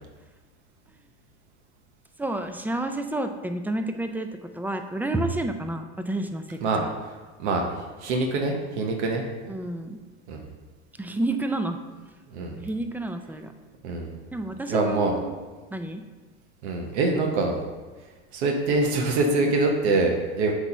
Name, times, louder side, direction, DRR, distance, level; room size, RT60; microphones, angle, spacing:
voice 1, 2.2-6.9 9.5-10.0 11.0-11.8 12.5-13.5 14.3-15.3 15.7-16.0, right 2 dB, 5° right, 7 dB, 0.4 m, -30 dB
voice 2, 6.6-7.1 7.4-9.2 10.3-10.4 12.3-12.6 13.8-14.2 14.7-15.2 16.6-17.6 18.3-20.5, right 3 dB, 85° right, 2 dB, 0.9 m, -25 dB
8.0 x 3.0 x 5.5 m, 1.3 s
supercardioid pair, 105°, 33 cm